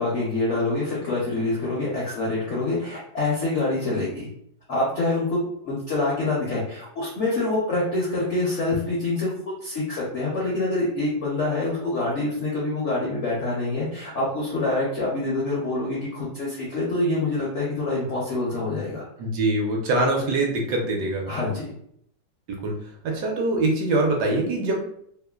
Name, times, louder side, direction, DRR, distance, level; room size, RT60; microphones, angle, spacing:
voice 1, 0.0-4.3 4.7-9.3 9.6-19.0 21.3-21.7, left 2 dB, 70° left, -5 dB, 0.7 m, -26 dB
voice 2, 19.2-21.2 22.5-22.8 23.0-24.8, right 2 dB, 70° right, 0 dB, 1.1 m, -23 dB
3.0 x 2.0 x 2.2 m, 0.69 s
omnidirectional pair, 2.0 m